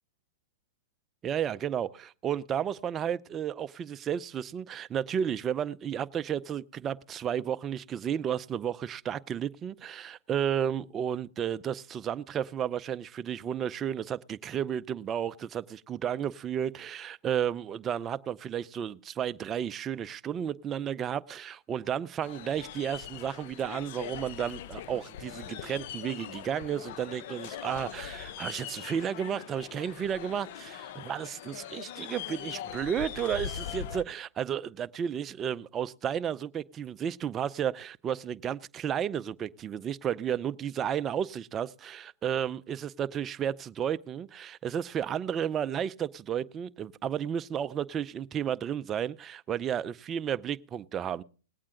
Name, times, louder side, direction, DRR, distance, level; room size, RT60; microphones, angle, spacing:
voice 1, 1.2-51.2, right 9 dB, 25° right, 0.5 m, -32 dB
sound 1, 22.2-34.0, left 10 dB, 55° left, 0.8 m, -41 dB
19.5 x 8.7 x 3.8 m
hypercardioid pair, 125°, 0 cm